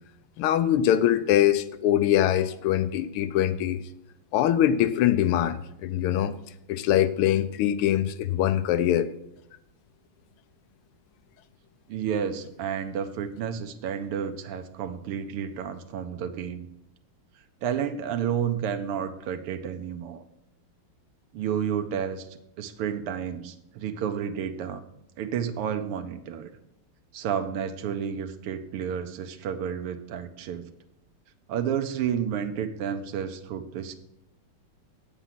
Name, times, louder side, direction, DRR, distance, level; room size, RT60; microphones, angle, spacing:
voice 1, 0.4-3.8 4.3-6.3 6.7-9.1, left 11 dB, 85° left, 13 dB, 1.5 m, -23 dB
voice 2, 11.9-16.7 17.6-20.2 21.3-22.3 22.6-24.8 25.2-26.5 27.1-30.7 31.5-33.9, right 8 dB, 90° right, 7 dB, 1.7 m, -31 dB
8.3 x 7.9 x 5.8 m, 0.82 s
omnidirectional pair, 2.4 m